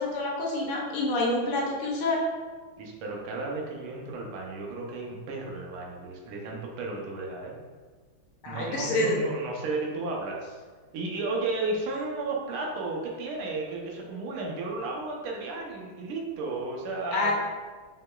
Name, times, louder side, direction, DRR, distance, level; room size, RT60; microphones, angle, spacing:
voice 1, 0.0-2.2 8.4-9.1 17.1-17.3, left 2 dB, 80° left, -2 dB, 1.6 m, -27 dB
voice 2, 2.8-7.6 8.5-10.4 10.9-17.3, right 3 dB, 80° right, -1 dB, 1.6 m, -33 dB
5.5 x 3.2 x 2.2 m, 1.4 s
omnidirectional pair, 2.4 m